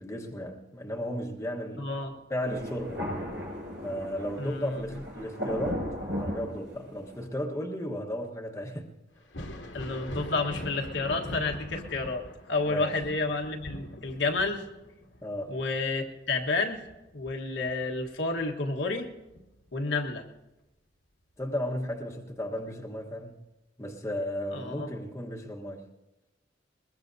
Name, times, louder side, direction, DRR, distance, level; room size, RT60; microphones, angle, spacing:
voice 1, 0.0-1.9 2.3-3.1 3.8-8.8 12.7-13.0 15.2-15.6 21.4-23.4 23.8-25.8, equal, 15° left, 1.3 m, -34 dB
voice 2, 1.8-2.2 4.4-4.8 9.7-12.2 12.5-14.6 15.5-16.8 17.1-19.1 19.7-20.2 24.5-24.9, left 3 dB, 70° left, 1.4 m, -30 dB
Thunder, 2.4-7.2, equal, 85° right, 6.2 m, -36 dB
Thunder 2, 9.2-18.5 18.9-20.1 21.7-21.8 22.6-22.7, left 1 dB, 85° left, 1.9 m, -43 dB
21.5 x 21.0 x 2.7 m
head